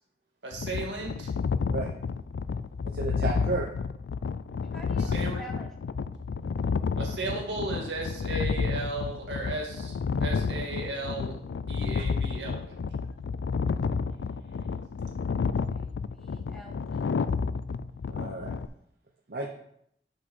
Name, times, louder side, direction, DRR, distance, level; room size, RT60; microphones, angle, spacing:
voice 1, 0.4-1.3 4.9-5.4 7.0-11.4 11.7-12.7, right 2 dB, 85° right, 0 dB, 2.0 m, -35 dB
sound 1, 0.5-18.7, left 5 dB, 80° left, 0.3 m, -30 dB
voice 2, 2.9-3.7 7.2-7.4 18.1-18.5 19.3-19.5, right 3 dB, 55° right, 0 dB, 0.8 m, -32 dB
voice 3, 4.7-5.7 15.4-17.1, right 1 dB, ahead, 1 dB, 1.0 m, -48 dB
6.1 x 5.7 x 5.5 m, 0.71 s
head